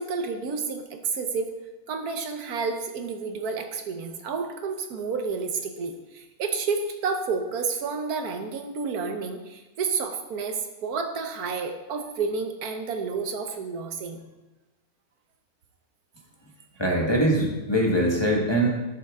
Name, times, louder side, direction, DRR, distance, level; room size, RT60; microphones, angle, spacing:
voice 1, 0.0-1.5 1.9-14.2 17.0-17.1, right 5 dB, 90° right, 6 dB, 1.5 m, -30 dB
voice 2, 16.8-18.7, right 1 dB, 20° left, -2 dB, 1.4 m, -22 dB
11.5 x 7.0 x 3.7 m, 1.1 s
omnidirectional pair, 1.6 m